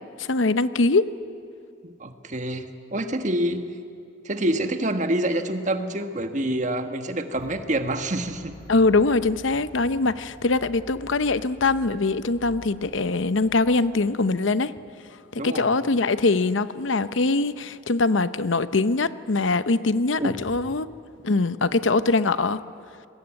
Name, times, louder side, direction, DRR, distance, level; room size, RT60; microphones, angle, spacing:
voice 1, 0.2-1.1 8.7-14.7 15.3-20.9 21.2-22.6, left 3 dB, 85° left, 14 dB, 0.8 m, -22 dB
voice 2, 1.8-2.7 2.9-3.6 4.2-8.5 15.4-15.7 20.2-20.7, right 1 dB, 40° right, 7 dB, 1.6 m, -27 dB
sound 1, 7.3-14.1, equal, 15° left, 3.3 m, -47 dB
26.0 x 21.0 x 8.9 m, 2.5 s
head